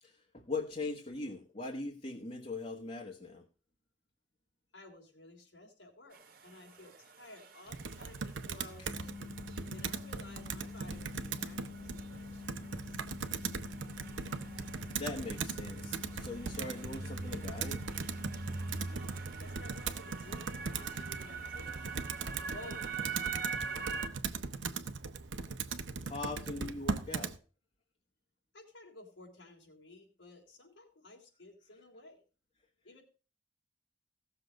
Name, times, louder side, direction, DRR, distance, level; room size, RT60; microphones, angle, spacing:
voice 1, 0.0-3.4 13.8-13.9 14.9-17.8 26.0-27.3, left 3 dB, 35° left, 0 dB, 1.4 m, -41 dB
voice 2, 4.7-9.3 9.7-13.0 18.8-22.0 22.3-24.2 28.5-32.2 32.8-33.0, left 2 dB, 85° left, -1 dB, 3.3 m, -54 dB
sound 1, 6.1-24.1, right 5 dB, 50° right, 1.5 m, -46 dB
Computer keyboard, 7.7-27.4, right 4 dB, 90° right, 1.0 m, -39 dB
sound 2, 8.9-18.9, left 4 dB, 55° left, 1.8 m, -47 dB
16.5 x 6.9 x 5.1 m, 0.36 s
head